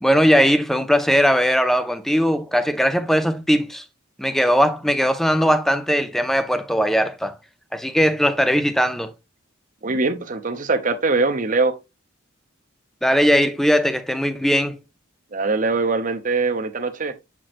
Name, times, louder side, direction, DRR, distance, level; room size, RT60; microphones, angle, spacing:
voice 1, 0.0-3.8 4.2-7.4 7.7-9.1 13.0-14.8, equal, ahead, 0.5 m, -19 dB
voice 2, 9.8-11.8 15.3-17.1, right 3 dB, 40° right, 0.8 m, -22 dB
7.5 x 6.0 x 2.5 m
head